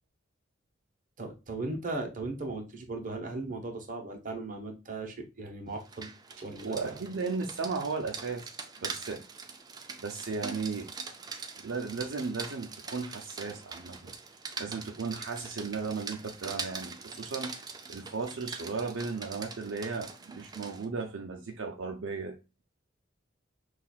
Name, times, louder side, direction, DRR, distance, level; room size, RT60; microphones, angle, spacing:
voice 1, 1.2-6.1 6.4-6.9, right 2 dB, 45° right, 0.9 m, -37 dB
Rain, 5.7-20.9, right 4 dB, 20° right, 0.4 m, -43 dB
voice 2, 6.6-9.2 10.0-10.9 11.6-14.1 14.6-17.6 17.9-22.4, right 4 dB, 75° right, 0.5 m, -35 dB
5.8 x 2.4 x 2.3 m
head